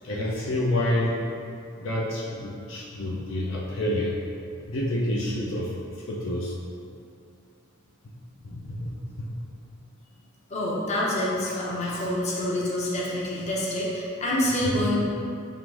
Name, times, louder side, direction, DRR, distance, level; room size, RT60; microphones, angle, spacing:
voice 1, 0.0-1.4 1.8-4.2 4.7-5.7 6.1-6.5 8.4-9.3 11.5-12.1 14.6-14.7, left 1 dB, 70° left, -4 dB, 0.6 m, -29 dB
voice 2, 10.5-15.0, left 1 dB, 35° left, -5 dB, 0.7 m, -27 dB
3.6 x 2.6 x 4.6 m, 2.4 s
head